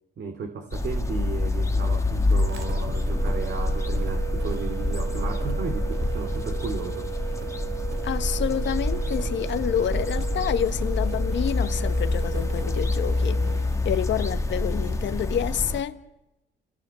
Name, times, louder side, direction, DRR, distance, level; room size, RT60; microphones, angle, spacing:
voice 1, 0.2-7.1, right 4 dB, 60° right, 2.9 m, -34 dB
sound 1, 0.7-15.8, left 2 dB, 15° left, 1.6 m, -26 dB
sound 2, 2.4-13.8, right 14 dB, 75° right, 3.2 m, -38 dB
voice 2, 8.0-13.4 13.8-16.0, left 9 dB, 70° left, 1.4 m, -28 dB
30.0 x 18.0 x 7.1 m
cardioid pair, 90°, 20 cm